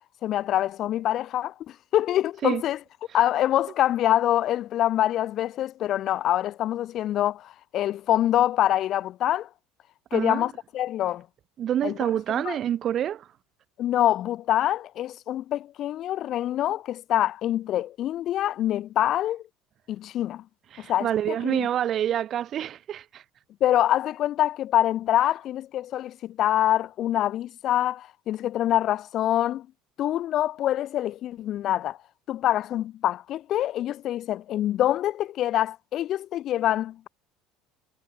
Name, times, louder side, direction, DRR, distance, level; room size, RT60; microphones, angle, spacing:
voice 1, 0.2-2.8 3.1-9.5 10.1-11.3 11.8-12.0 12.4-12.6 13.8-19.4 19.9-20.4 20.8-21.7 23.6-29.7 30.0-32.0 32.3-37.1, left 12 dB, 50° left, 0.7 m, -25 dB
voice 2, 10.1-10.5 11.6-13.3 20.7-23.2, right 10 dB, 45° right, 1.7 m, -27 dB
supercardioid pair, 105°, 0 cm